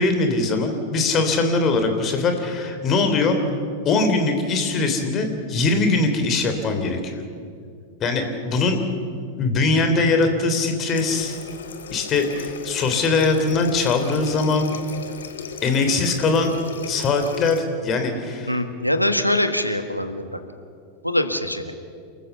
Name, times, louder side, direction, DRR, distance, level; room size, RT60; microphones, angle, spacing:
voice 1, 0.0-3.4 3.8-7.2 8.0-8.8 9.4-11.4 11.9-14.7 15.6-16.5 16.9-18.6, left 3 dB, 30° left, 6 dB, 3.3 m, -21 dB
Water tap faucet, 10.9-17.6, left 6 dB, 65° left, 1.8 m, -36 dB
voice 2, 18.5-20.4 21.0-21.7, left 1 dB, 90° left, 8 dB, 1.5 m, -23 dB
28.5 x 14.5 x 7.0 m, 2.2 s
figure-of-eight pair, 90°, 0 cm